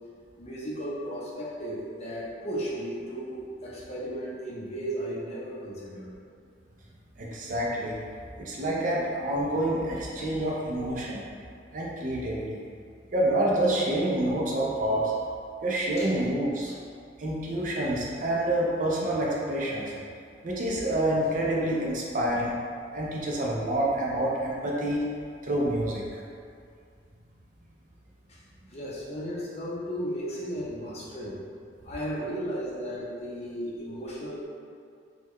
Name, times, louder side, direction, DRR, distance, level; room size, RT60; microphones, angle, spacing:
voice 1, 0.4-6.2 16.0-16.2 28.3-28.4 28.7-31.4 31.8-34.4, equal, 35° left, -7 dB, 0.6 m, -35 dB
voice 2, 7.2-8.0 8.4-11.3 11.7-12.6 13.1-15.1 15.6-16.7 17.2-19.9 20.4-22.5 22.9-25.0 25.4-26.1, right 1 dB, 45° right, -4 dB, 0.5 m, -27 dB
3.6 x 2.2 x 3.0 m, 2.3 s
head